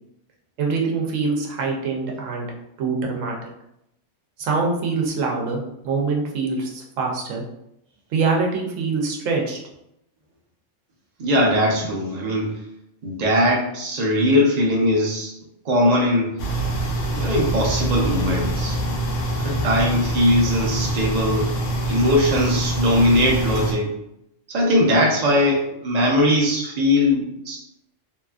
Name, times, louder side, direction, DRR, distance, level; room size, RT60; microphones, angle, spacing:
voice 1, 0.6-2.5 2.8-3.5 4.4-7.4 8.1-9.6 11.8-11.9, right 4 dB, 85° right, 1 dB, 1.0 m, -24 dB
voice 2, 11.2-12.6 13.0-15.3 15.6-16.3 17.1-18.8 19.4-21.6 21.9-23.9 24.5-27.6, left 1 dB, 50° right, -2 dB, 0.5 m, -20 dB
sound 1, 16.4-23.7, right 1 dB, 80° left, 1.0 m, -25 dB
2.8 x 2.4 x 2.3 m, 0.81 s
omnidirectional pair, 1.3 m